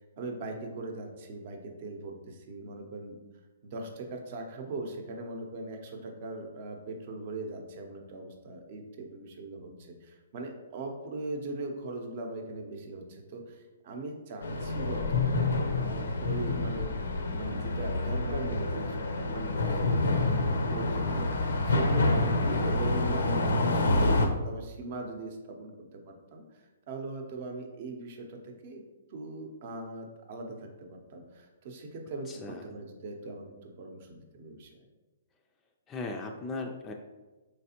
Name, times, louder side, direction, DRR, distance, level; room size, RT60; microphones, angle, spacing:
voice 1, 0.0-3.2 3.6-26.4 26.9-28.8 29.1-34.8, right 2 dB, 50° right, 3 dB, 0.7 m, -40 dB
sound 1, 14.4-24.3, left 2 dB, 80° left, 0.5 m, -27 dB
voice 2, 32.3-32.7 35.9-36.9, left 3 dB, 20° left, 2 dB, 0.3 m, -37 dB
4.1 x 3.2 x 2.8 m, 1.2 s
hypercardioid pair, 130°, 0 cm